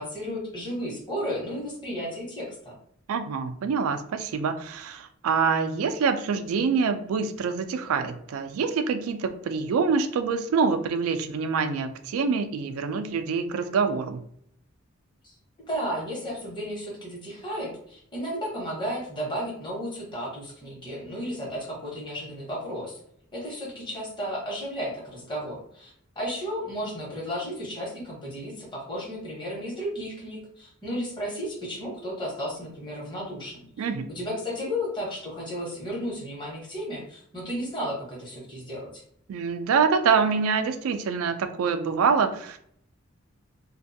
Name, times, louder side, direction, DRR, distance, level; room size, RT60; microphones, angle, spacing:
voice 1, 0.0-2.8 15.2-15.3 15.7-23.0 23.3-39.0, equal, 25° left, -4 dB, 0.9 m, -33 dB
voice 2, 3.1-14.2 33.8-34.1 39.3-42.6, right 5 dB, 90° right, 9 dB, 0.3 m, -25 dB
2.5 x 2.3 x 2.6 m, 0.66 s
head